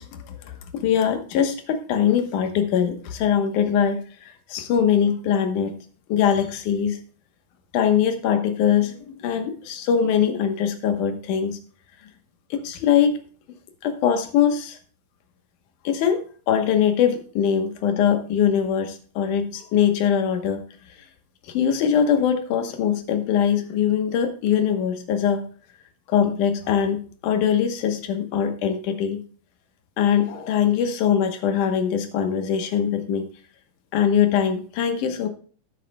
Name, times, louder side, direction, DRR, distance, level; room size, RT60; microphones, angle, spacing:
voice 1, 0.0-5.8 6.1-7.0 7.7-11.6 12.5-13.2 13.8-14.8 15.8-20.6 21.5-25.4 26.1-29.2 30.0-33.3 33.9-35.3, left 8 dB, 65° left, 6 dB, 2.2 m, -22 dB
13.0 x 9.4 x 2.2 m, 0.42 s
omnidirectional pair, 4.5 m